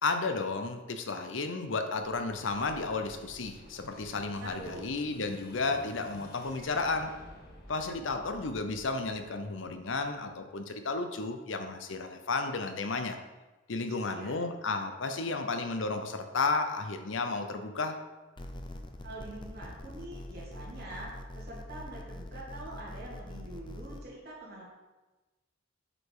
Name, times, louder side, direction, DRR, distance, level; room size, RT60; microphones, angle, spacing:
voice 1, 0.0-7.1 7.7-13.2 13.7-18.0, left 3 dB, 70° left, 7 dB, 0.8 m, -33 dB
Explosion, 2.0-10.7, equal, 55° left, 2.1 m, -52 dB
voice 2, 4.4-4.9 13.9-14.4 19.0-24.6, right 1 dB, 55° right, -5 dB, 2.8 m, -45 dB
sound 1, 18.4-24.0, left 1 dB, 25° left, 0.6 m, -44 dB
8.4 x 5.1 x 4.8 m, 1.2 s
head